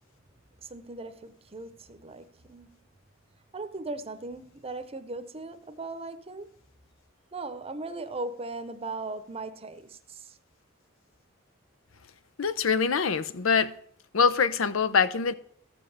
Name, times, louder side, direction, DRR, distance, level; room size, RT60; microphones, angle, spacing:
voice 1, 0.6-2.8 3.5-6.5 7.3-10.4, right 2 dB, 30° right, 0.7 m, -38 dB
voice 2, 12.4-13.7 14.1-15.3, left 5 dB, 85° left, 0.7 m, -24 dB
13.5 x 5.4 x 7.1 m
head